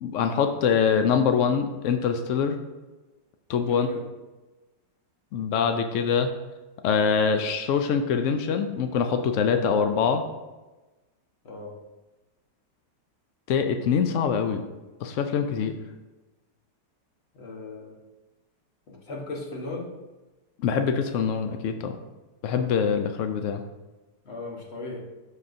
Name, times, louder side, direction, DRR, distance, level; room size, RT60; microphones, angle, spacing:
voice 1, 0.0-2.6 3.5-3.9 5.3-6.3 6.8-10.2 13.5-14.6 15.0-15.7 20.6-22.0 22.4-23.6, left 6 dB, 90° left, 7 dB, 0.6 m, -24 dB
voice 2, 3.7-4.0 11.4-11.7 17.3-18.0 18.9-19.9 24.2-25.0, left 2 dB, 40° left, -1 dB, 1.3 m, -36 dB
12.5 x 4.3 x 2.6 m, 1.1 s
omnidirectional pair, 1.9 m